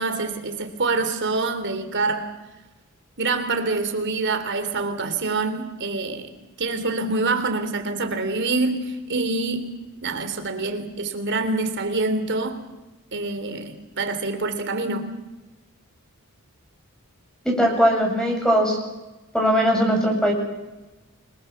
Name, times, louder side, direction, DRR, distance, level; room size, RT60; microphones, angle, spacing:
voice 1, 0.0-2.3 3.2-6.3 6.6-12.6 13.1-15.1, right 3 dB, 55° right, 3.5 m, -26 dB
voice 2, 17.4-18.8 19.3-20.3, equal, 5° left, 7.9 m, -20 dB
28.0 x 22.5 x 7.5 m
head